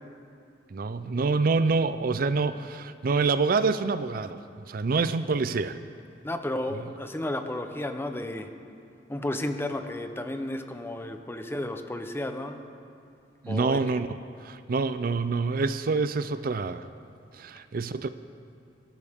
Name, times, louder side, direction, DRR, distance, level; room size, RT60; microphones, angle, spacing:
voice 1, 0.7-4.4 4.7-5.8 6.7-6.8 13.4-16.9 17.3-18.1, right 4 dB, 55° right, 12 dB, 0.4 m, -26 dB
voice 2, 6.2-8.5 9.1-12.6 13.5-13.8, left 1 dB, 15° left, 6 dB, 0.8 m, -32 dB
25.0 x 11.5 x 3.6 m, 2.5 s
head